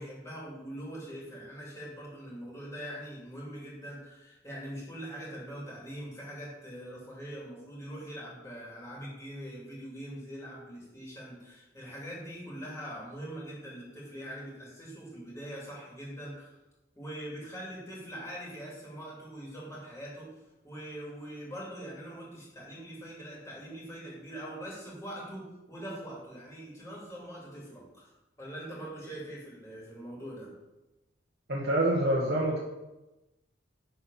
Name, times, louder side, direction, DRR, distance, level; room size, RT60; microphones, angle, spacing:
voice 1, 0.0-16.5 16.9-20.3 20.6-28.1 28.4-30.5, equal, 15° left, -5 dB, 2.7 m, -42 dB
voice 2, 31.5-32.6, right 1 dB, 55° right, -3 dB, 1.2 m, -26 dB
9.8 x 4.3 x 5.6 m, 1.0 s
head